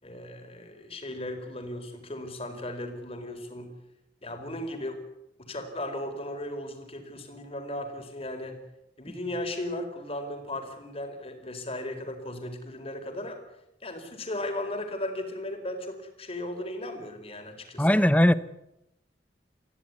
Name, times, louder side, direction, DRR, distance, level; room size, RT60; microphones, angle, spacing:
voice 1, 0.0-3.7 4.2-5.0 5.4-8.6 9.0-13.4 13.8-17.9, left 1 dB, 35° left, 5 dB, 4.4 m, -36 dB
voice 2, 17.8-18.3, left 1 dB, 10° left, 14 dB, 0.9 m, -19 dB
24.0 x 15.5 x 9.6 m, 0.85 s
head